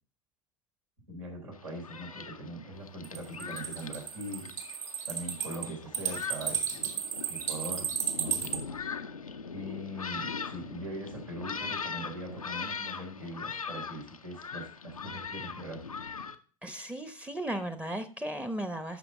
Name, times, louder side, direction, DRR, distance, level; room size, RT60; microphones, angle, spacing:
voice 1, 1.1-4.5 5.1-6.9 7.3-8.6 9.5-15.8, right 1 dB, 75° right, -1 dB, 3.9 m, -41 dB
Thunderstorm, 1.5-16.4, left 5 dB, 85° left, 0.6 m, -41 dB
sound 1, 3.0-8.6, right 8 dB, 45° right, 2.4 m, -33 dB
voice 2, 16.6-19.0, right 1 dB, 5° right, 10 dB, 0.9 m, -36 dB
12.0 x 5.9 x 3.7 m, 0.42 s
figure-of-eight pair, 75°, 18 cm